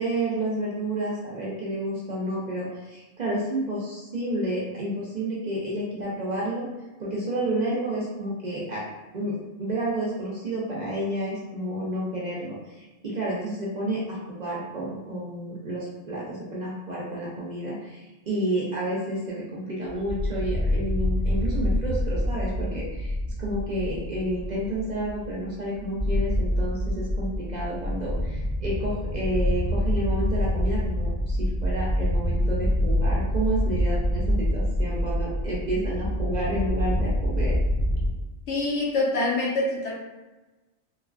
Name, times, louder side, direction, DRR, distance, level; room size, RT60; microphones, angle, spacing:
voice 1, 0.0-6.7 7.0-8.8 9.1-23.1 23.4-37.5, right 1 dB, 50° right, -5 dB, 0.6 m, -30 dB
sound 1, 19.9-38.1, equal, 70° left, 1.0 m, -26 dB
voice 2, 38.5-39.9, left 2 dB, 85° left, -5 dB, 1.1 m, -25 dB
3.1 x 2.3 x 2.3 m, 1.1 s
omnidirectional pair, 1.2 m